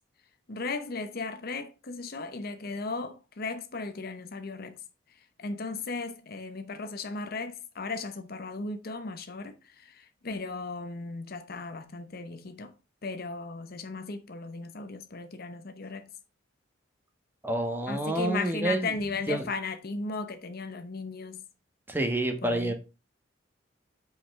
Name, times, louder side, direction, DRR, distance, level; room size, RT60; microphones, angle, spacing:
voice 1, 0.5-4.7 5.4-9.5 10.2-12.7 13.0-16.1 17.9-21.4 22.4-22.7, left 3 dB, 55° left, 0.8 m, -36 dB
voice 2, 17.4-18.9 19.3-19.5 21.9-22.7, right 1 dB, 10° right, 1.3 m, -28 dB
5.9 x 4.9 x 5.6 m
head